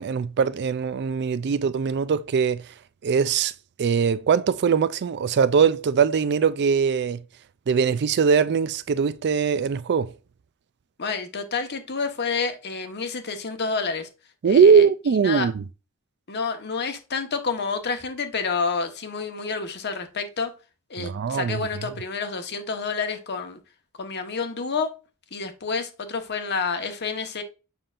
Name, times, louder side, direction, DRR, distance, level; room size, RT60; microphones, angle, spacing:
voice 1, 0.0-2.7 3.0-3.5 3.8-7.2 7.7-10.1 14.4-15.6 21.0-21.7, right 6 dB, 50° right, 0.4 m, -21 dB
voice 2, 11.0-14.1 14.4-14.9 15.2-15.5 16.3-20.5 20.9-23.6 24.0-24.9 25.3-27.4, left 5 dB, 50° left, 1.1 m, -29 dB
7.0 x 5.7 x 2.5 m
head